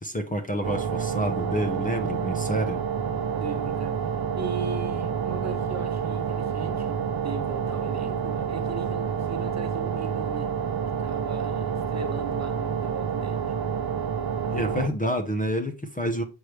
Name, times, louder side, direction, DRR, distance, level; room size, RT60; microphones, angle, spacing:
voice 1, 0.0-2.8 14.5-16.2, equal, 15° left, 0.8 m, -28 dB
sound 1, 0.6-14.9, right 7 dB, 50° right, 0.8 m, -28 dB
voice 2, 3.4-4.0 4.4-10.5 11.0-13.5, right 4 dB, 35° right, 1.3 m, -38 dB
8.0 x 4.6 x 3.3 m
wide cardioid pair, 110°, 49 cm